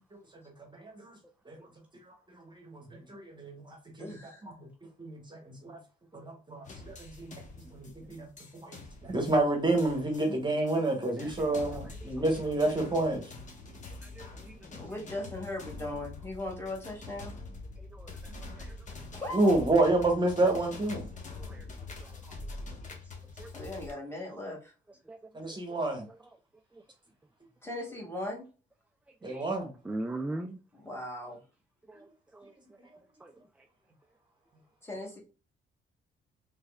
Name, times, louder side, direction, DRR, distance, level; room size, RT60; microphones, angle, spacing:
voice 1, 0.3-1.2 1.5-1.7 2.0-4.7 5.0-5.8 6.1-7.4 7.7-8.3 8.6-13.3 19.3-21.1 25.3-26.1 29.2-29.8 32.8-32.9, right 2 dB, 20° right, 1.1 m, -30 dB
voice 2, 4.0-4.4 14.8-17.4 19.1-19.5 23.5-24.7 27.6-28.4 30.7-31.4 34.8-35.2, left 1 dB, 10° left, 1.9 m, -38 dB
sound 1, 6.6-23.9, left 3 dB, 40° left, 1.0 m, -45 dB
voice 3, 11.2-11.5 14.0-14.6 17.8-18.8 21.4-21.7 22.0-22.2 23.4-23.5 25.1-25.2 25.5-25.6 29.3-29.5 29.8-30.6 31.9-32.1 32.3-32.5 33.2-33.3, right 2 dB, 5° right, 0.3 m, -40 dB
3.4 x 3.2 x 2.3 m
cardioid pair, 90°, 20 cm